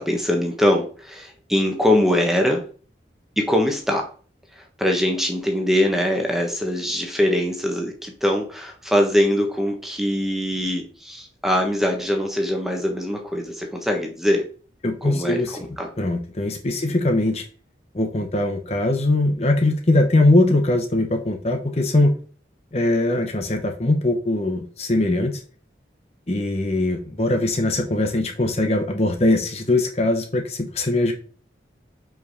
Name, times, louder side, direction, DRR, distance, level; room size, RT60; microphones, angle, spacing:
voice 1, 0.0-2.6 3.4-4.1 4.5-14.4 15.0-15.9, left 1 dB, ahead, 2 dB, 1.3 m, -22 dB
voice 2, 14.8-15.6 16.0-17.4 17.9-22.2 22.7-25.4 26.3-31.1, left 2 dB, 35° left, 4 dB, 0.8 m, -21 dB
5.8 x 4.9 x 5.4 m, 0.41 s
head